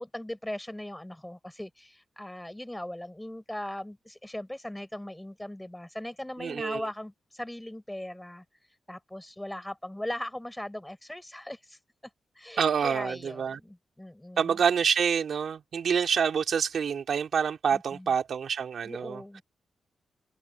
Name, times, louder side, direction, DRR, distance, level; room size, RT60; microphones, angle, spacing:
voice 1, 0.0-8.4 8.9-11.8 12.4-14.6 17.7-18.1 18.8-19.4, left 1 dB, 10° left, 6.2 m, -39 dB
voice 2, 6.4-6.8 12.6-13.6 14.4-19.4, right 7 dB, 70° right, 3.0 m, -27 dB
open air
cardioid pair, 105°, 0 cm